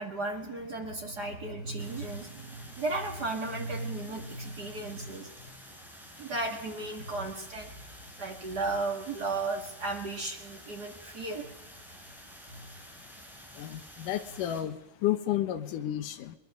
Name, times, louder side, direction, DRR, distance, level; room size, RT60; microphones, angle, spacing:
voice 1, 0.0-5.5 6.2-7.7 8.2-11.5 12.5-12.7, right 2 dB, 40° right, 3 dB, 1.4 m, -35 dB
sound 1, 1.8-14.6, equal, ahead, 4.6 m, -50 dB
voice 2, 13.6-16.3, left 12 dB, 70° left, 10 dB, 2.4 m, -31 dB
22.5 x 21.5 x 6.5 m, 0.91 s
omnidirectional pair, 4.2 m